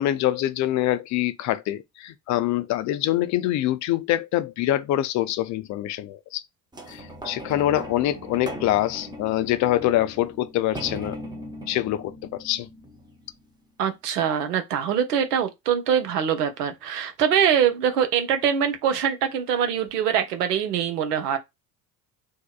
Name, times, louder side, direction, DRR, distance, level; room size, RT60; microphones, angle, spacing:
voice 1, 0.0-6.4 6.9-11.2 11.7-12.7, left 13 dB, 40° left, 0.5 m, -25 dB
sound 1, 6.7-13.5 14.1-14.2, equal, 10° right, 0.6 m, -39 dB
voice 2, 13.8-21.4, right 8 dB, 80° right, 0.7 m, -23 dB
2.7 x 2.1 x 2.4 m
figure-of-eight pair, 60°, 46 cm